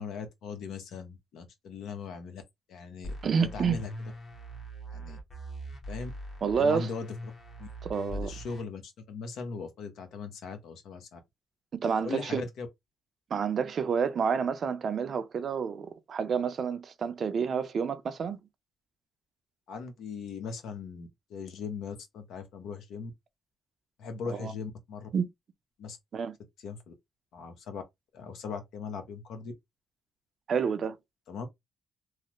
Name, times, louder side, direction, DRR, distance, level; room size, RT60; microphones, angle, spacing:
voice 1, 0.0-2.4 2.7-3.1 3.4-3.9 4.9-5.2 5.9-6.1 6.5-7.1 7.6-7.7 8.1-11.2 12.0-12.7 19.7-23.1 24.0-25.1 25.8-26.0 26.6-26.9 27.3-27.8 28.1-29.5 31.3-31.5, left 5 dB, 75° left, 0.8 m, -39 dB
sound 1, 3.0-8.6, equal, 45° left, 1.2 m, -41 dB
voice 2, 3.2-3.8 6.4-6.9 7.8-8.3 11.7-12.4 13.3-18.4 24.3-24.5 25.1-25.3 26.1-26.4 30.5-31.0, right 6 dB, 50° right, 0.5 m, -29 dB
3.2 x 2.0 x 2.9 m
cardioid pair, 90°, 0 cm